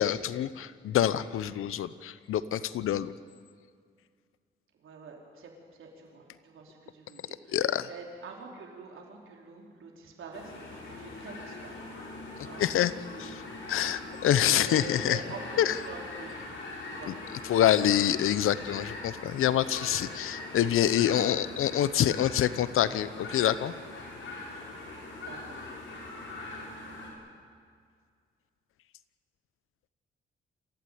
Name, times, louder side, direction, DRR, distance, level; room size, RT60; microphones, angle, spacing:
voice 1, 0.0-3.1 7.5-7.9 12.6-12.9 13.2-13.4 13.7-15.2 15.6-15.8 17.1-17.2 17.4-23.7, left 11 dB, 85° left, 16 dB, 0.9 m, -26 dB
voice 2, 4.8-5.5 5.8-7.6 7.9-11.8 12.4-12.7 12.9-13.5 14.5-16.3 16.9-17.1 18.4-18.5 21.1-21.2 25.3-25.6, right 4 dB, 75° right, 0 dB, 4.9 m, -45 dB
sound 1, 10.3-27.1, left 3 dB, 65° left, 7.5 m, -42 dB
27.0 x 15.0 x 9.5 m, 2.2 s
cardioid pair, 110°, 21 cm